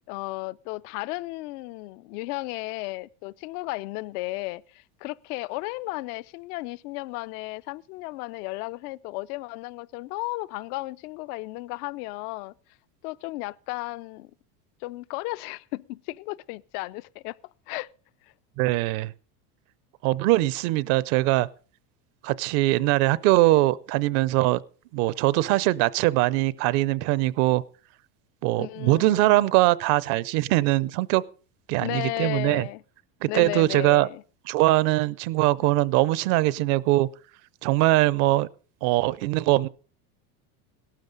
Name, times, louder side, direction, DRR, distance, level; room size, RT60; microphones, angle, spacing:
voice 1, 0.1-12.5 13.0-14.3 14.8-17.4 17.7-17.9 28.6-29.5 31.8-32.8 33.3-34.2, left 21 dB, 75° left, 0.6 m, -34 dB
voice 2, 18.6-19.1 20.0-21.5 22.2-24.6 24.9-27.6 28.4-31.2 31.7-32.7 33.2-34.1 34.5-37.1 37.6-38.5 38.8-39.7, right 18 dB, 65° right, 0.7 m, -22 dB
17.0 x 12.5 x 3.9 m
supercardioid pair, 130°, 46 cm